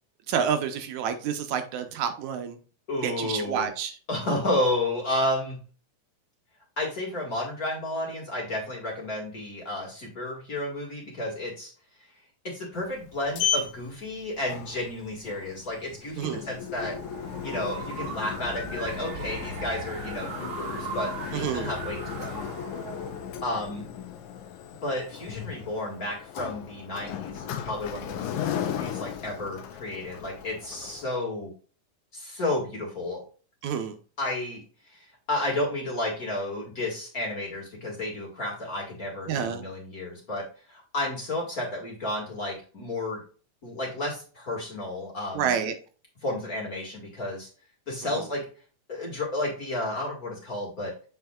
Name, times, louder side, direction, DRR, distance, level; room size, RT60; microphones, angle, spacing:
voice 1, 0.3-2.6 3.0-4.0 16.2-16.5 21.3-21.7 33.6-34.0 39.3-39.6 45.3-45.7 48.1-48.3, right 7 dB, 75° right, 2.0 m, -29 dB
voice 2, 2.9-3.7 4.1-5.6 6.8-11.7 12.4-16.9 17.4-22.4 23.4-23.8 24.8-31.5 32.1-33.2 34.2-34.6 34.9-43.2 43.6-45.5 46.2-47.5 47.9-48.4 48.9-50.9, left 1 dB, 35° left, 1.9 m, -32 dB
Sliding door, 12.8-31.0, left 8 dB, 85° left, 2.3 m, -36 dB
sound 1, 16.7-23.9, right 5 dB, 55° right, 1.7 m, -39 dB
7.8 x 5.6 x 2.3 m
omnidirectional pair, 3.4 m